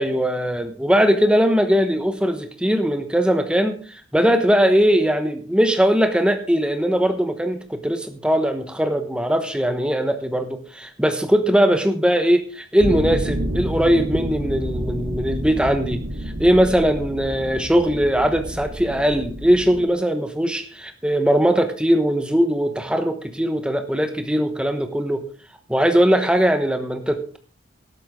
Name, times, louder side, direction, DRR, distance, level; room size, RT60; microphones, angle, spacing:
voice 1, 0.0-16.0 16.4-25.3 25.7-27.4, equal, 5° right, 7 dB, 1.1 m, -20 dB
sound 1, 12.8-19.9, equal, 70° right, 2.5 m, -29 dB
13.0 x 12.0 x 3.7 m, 0.41 s
head